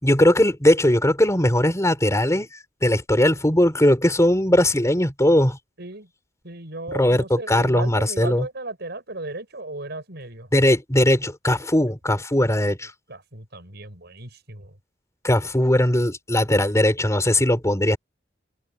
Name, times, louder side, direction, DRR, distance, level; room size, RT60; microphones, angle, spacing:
voice 1, 0.0-2.5 2.8-5.6 6.9-8.5 10.5-12.9 15.2-18.0, left 1 dB, 15° left, 5.2 m, -19 dB
voice 2, 5.8-6.1 6.4-10.5 13.1-14.7, right 2 dB, 60° right, 7.0 m, -35 dB
head